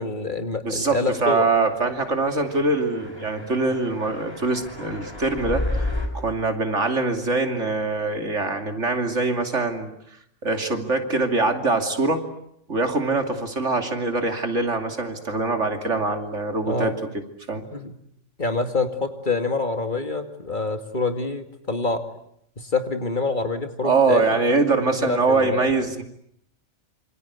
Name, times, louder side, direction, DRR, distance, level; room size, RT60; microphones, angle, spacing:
voice 1, 0.0-1.5 16.7-17.0 17.7-17.9 18.4-22.0 22.6-24.4 24.9-25.7, left 3 dB, 40° left, 6 dB, 2.4 m, -26 dB
voice 2, 0.6-9.9 10.4-12.2 12.7-16.9 17.5-17.6 23.8-26.0, right 3 dB, 75° right, 5 dB, 3.1 m, -23 dB
sound 1, 1.6-6.1, left 2 dB, 20° left, 4.0 m, -32 dB
27.0 x 26.5 x 8.2 m, 0.73 s
omnidirectional pair, 1.2 m